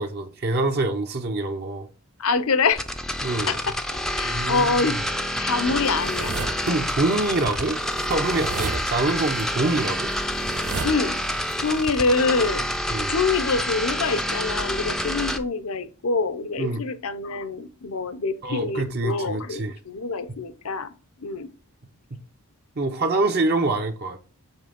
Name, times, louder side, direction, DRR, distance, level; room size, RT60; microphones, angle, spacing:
voice 1, 0.0-1.9 3.2-3.6 4.2-5.0 6.7-10.1 12.9-13.2 16.6-16.8 18.4-19.7 22.8-24.2, right 2 dB, 45° right, 0.7 m, -25 dB
voice 2, 2.2-2.8 3.5-6.3 10.8-11.2 11.6-12.7 13.1-20.9 21.2-21.5, left 4 dB, 70° left, 0.7 m, -25 dB
sound 1, 2.7-15.4, equal, ahead, 0.5 m, -28 dB
sound 2, 5.8-6.7 7.1-11.5 11.8-12.7, right 4 dB, 85° right, 0.8 m, -35 dB
7.2 x 3.3 x 5.1 m
head